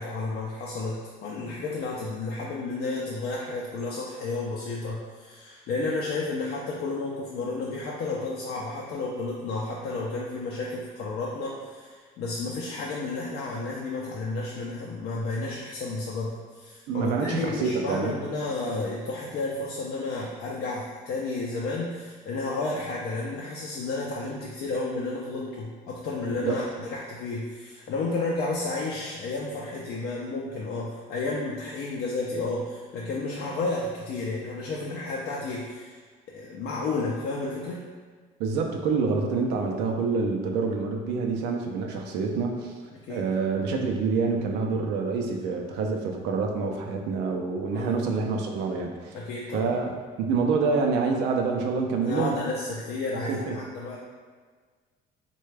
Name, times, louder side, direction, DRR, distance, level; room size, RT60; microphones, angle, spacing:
voice 1, 0.0-36.0 36.3-37.8 42.9-43.3 47.7-48.0 49.1-49.7 52.0-54.0, left 3 dB, 70° left, -4 dB, 0.5 m, -32 dB
voice 2, 16.9-18.1 26.4-26.6 38.4-42.7 43.1-49.1 49.5-52.3 53.3-53.6, right 4 dB, 90° right, 2 dB, 0.5 m, -27 dB
3.3 x 2.2 x 3.2 m, 1.5 s
cardioid pair, 110°, 17 cm